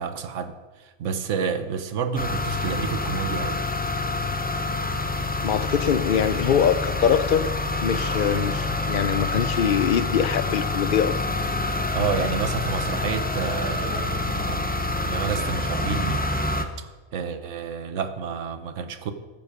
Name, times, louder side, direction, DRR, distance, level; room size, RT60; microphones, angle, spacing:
voice 1, 0.0-3.6 11.9-14.7 15.0-16.6 17.1-19.1, right 6 dB, 80° right, 10 dB, 1.2 m, -30 dB
sound 1, 2.2-16.7, left 2 dB, 10° left, 0.4 m, -27 dB
voice 2, 5.4-7.5 7.8-11.1, left 8 dB, 60° left, 13 dB, 0.6 m, -23 dB
14.0 x 7.4 x 5.0 m, 1.3 s
omnidirectional pair, 1.3 m